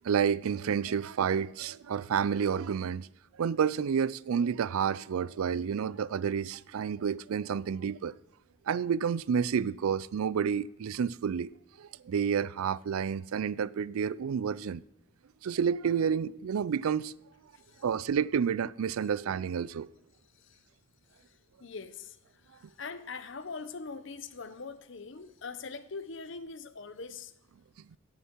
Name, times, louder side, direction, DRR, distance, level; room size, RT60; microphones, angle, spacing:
voice 1, 0.0-3.1 3.4-8.1 8.7-11.5 11.8-14.8 15.4-17.1 17.8-19.9, right 7 dB, 85° right, 0.4 m, -30 dB
voice 2, 17.5-17.8 20.3-20.7 21.1-27.3, left 4 dB, 60° left, 0.8 m, -43 dB
17.0 x 6.8 x 4.6 m
head